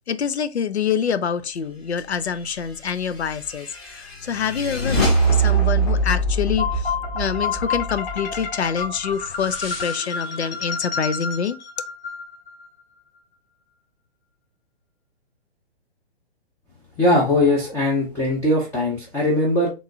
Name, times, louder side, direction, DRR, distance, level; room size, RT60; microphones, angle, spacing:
voice 1, 0.1-11.6, left 7 dB, 85° left, 0.5 m, -26 dB
sound 1, 2.9-8.5, right 3 dB, 40° left, 1.6 m, -23 dB
sound 2, 6.6-12.7, left 5 dB, 60° left, 1.2 m, -29 dB
voice 2, 17.0-19.7, left 1 dB, 10° left, 0.5 m, -20 dB
3.6 x 3.1 x 2.5 m
figure-of-eight pair, 120°, 32 cm